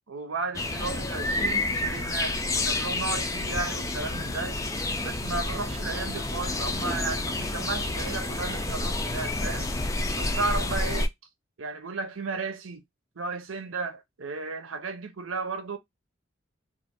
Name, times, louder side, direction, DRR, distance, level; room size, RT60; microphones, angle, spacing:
voice 1, 0.1-4.6 5.0-9.7 10.2-11.1 11.6-12.8 13.2-15.8, right 3 dB, 85° right, 0.7 m, -34 dB
sound 1, 0.5-11.1, left 2 dB, 15° left, 0.4 m, -29 dB
2.6 x 2.4 x 4.1 m
head